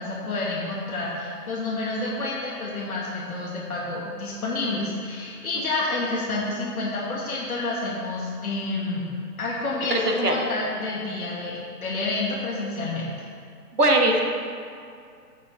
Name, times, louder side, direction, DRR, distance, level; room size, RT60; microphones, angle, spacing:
voice 1, 0.0-9.0 9.4-13.1, left 2 dB, 60° left, -5 dB, 2.0 m, -29 dB
voice 2, 9.9-10.4 13.8-14.2, right 1 dB, 70° right, 2 dB, 1.6 m, -20 dB
15.0 x 6.6 x 3.4 m, 2.3 s
figure-of-eight pair, 140°, 49 cm